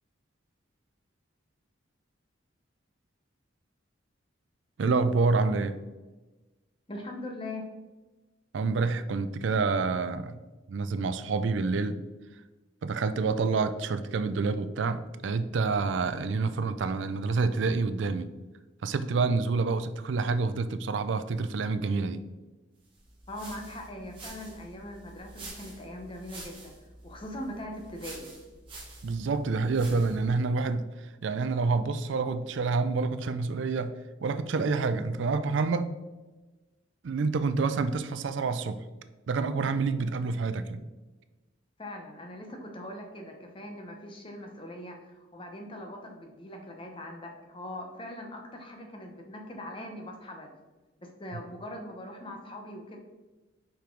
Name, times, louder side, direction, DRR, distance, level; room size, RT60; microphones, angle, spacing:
voice 1, 4.8-5.8 8.5-10.4 10.7-12.0 12.8-18.3 18.8-22.2 29.0-33.9 34.2-36.0 37.0-38.8 39.3-40.8, right 4 dB, 70° right, 0.4 m, -28 dB
voice 2, 6.9-7.7 23.3-26.7 27.0-28.3 41.8-50.5 51.0-53.0, left 1 dB, 25° left, 0.9 m, -41 dB
sound 1, 22.9-30.3, right 2 dB, 25° right, 1.7 m, -47 dB
5.3 x 4.9 x 4.5 m
head